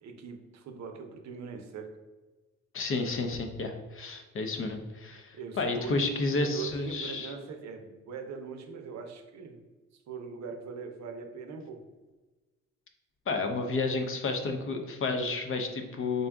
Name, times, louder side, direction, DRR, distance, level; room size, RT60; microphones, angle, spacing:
voice 1, 0.0-2.0 5.3-9.6 10.1-11.8, right 5 dB, 65° right, 4 dB, 0.6 m, -41 dB
voice 2, 2.7-7.3 13.3-16.3, left 3 dB, 45° left, 5 dB, 0.6 m, -31 dB
3.9 x 2.3 x 3.5 m, 1.2 s
cardioid pair, 90°, 30 cm